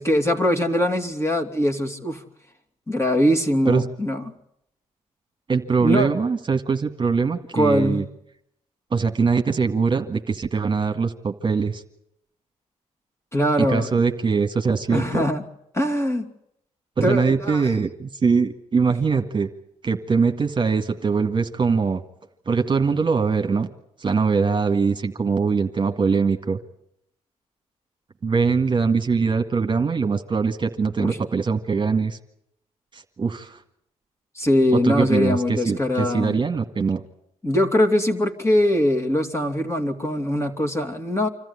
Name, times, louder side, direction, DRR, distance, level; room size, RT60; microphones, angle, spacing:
voice 1, 0.0-2.2 2.9-4.2 5.8-6.1 7.5-8.0 13.3-13.9 14.9-15.4 15.7-16.3 17.0-17.7 31.0-31.2 34.4-36.4 37.4-41.3, left 1 dB, 20° left, 4 dB, 2.9 m, -22 dB
voice 2, 5.5-8.0 8.9-11.8 13.6-15.2 17.0-19.5 19.8-22.0 22.5-23.7 24.0-26.6 28.2-32.2 32.9-33.6 34.7-37.0, right 5 dB, 35° right, 5 dB, 1.8 m, -22 dB
26.5 x 14.0 x 9.9 m, 0.77 s
supercardioid pair, 60°, 14 cm